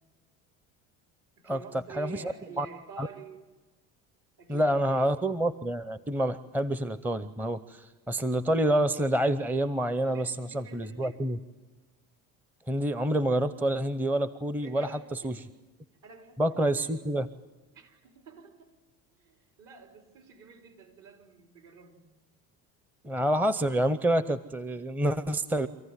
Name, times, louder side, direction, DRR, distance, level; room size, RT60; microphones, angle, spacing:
voice 1, 1.4-3.5 4.4-5.2 10.0-11.4 14.6-15.5 16.0-17.1 17.7-18.8 19.2-22.1, right 6 dB, 60° right, 4.0 m, -49 dB
voice 2, 1.9-2.7 3.0-3.1 4.5-11.4 12.7-14.9 15.2-15.4 16.4-17.3 23.0-25.7, right 1 dB, 5° right, 0.7 m, -28 dB
26.5 x 15.0 x 9.7 m
supercardioid pair, 105°, 35 cm